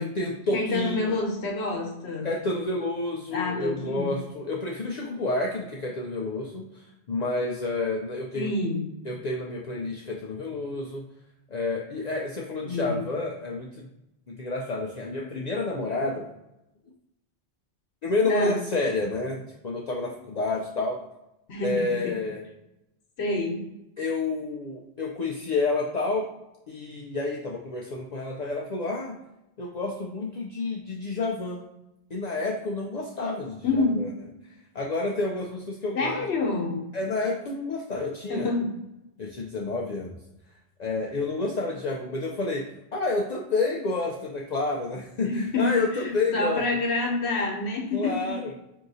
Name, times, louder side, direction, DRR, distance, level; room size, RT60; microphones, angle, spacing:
voice 1, 0.0-1.1 2.2-8.5 9.1-11.0 11.5-13.9 14.3-16.3 18.0-21.0 21.6-22.4 24.0-26.3 26.7-29.2 29.6-31.6 32.1-34.1 34.7-36.1 36.9-38.5 39.2-40.1 40.8-46.6 47.9-48.5, left 3 dB, 55° left, -2 dB, 0.5 m, -29 dB
voice 2, 0.5-2.3 3.3-4.1 8.3-8.9 12.7-13.0 18.3-18.6 21.5-22.2 23.2-23.7 33.6-34.1 35.9-36.9 38.3-38.8 45.2-48.4, left 2 dB, 85° left, 1 dB, 1.1 m, -27 dB
4.7 x 2.7 x 2.7 m, 0.89 s
omnidirectional pair, 1.1 m